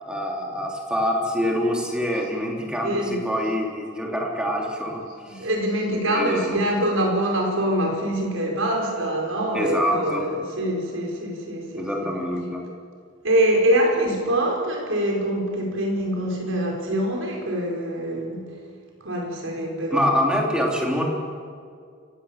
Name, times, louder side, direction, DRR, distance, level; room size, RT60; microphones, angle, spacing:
voice 1, 0.0-5.5 6.1-6.6 9.5-10.3 11.8-12.6 19.9-21.0, equal, 5° right, -1 dB, 3.2 m, -25 dB
voice 2, 2.8-3.2 5.3-12.1 13.2-18.5 19.0-20.2, right 1 dB, 80° right, 0 dB, 5.1 m, -24 dB
29.0 x 16.5 x 7.4 m, 2.2 s
head